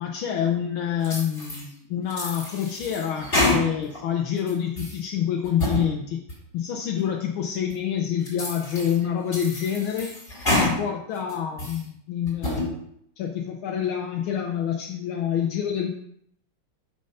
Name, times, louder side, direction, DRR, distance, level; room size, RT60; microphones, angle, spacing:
voice 1, 0.0-6.2 6.5-10.1 10.5-12.7 13.2-15.9, left 9 dB, 75° left, 2 dB, 1.6 m, -27 dB
sound 1, 1.0-1.7 2.1-4.0 4.4-5.0 5.4-5.9 6.3-6.4 7.0-7.1 7.7-7.8 8.2-9.0 9.3-10.7 11.2-11.8 12.3-12.7, left 1 dB, 30° left, 3.6 m, -28 dB
6.7 x 6.6 x 5.5 m, 0.72 s
omnidirectional pair, 2.3 m